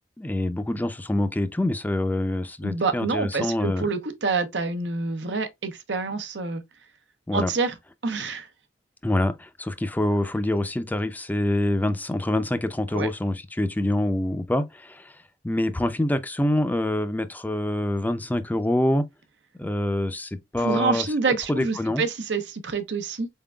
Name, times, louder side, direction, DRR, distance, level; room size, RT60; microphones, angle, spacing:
voice 1, 0.2-3.9 7.3-7.5 9.0-15.1 15.4-19.1 19.6-21.0 21.5-22.0, left 1 dB, 10° left, 0.4 m, -25 dB
voice 2, 2.6-6.6 7.3-7.8 8.0-8.5 12.9-13.1 20.6-23.3, right 4 dB, 90° right, 0.8 m, -27 dB
4.3 x 3.7 x 2.2 m
head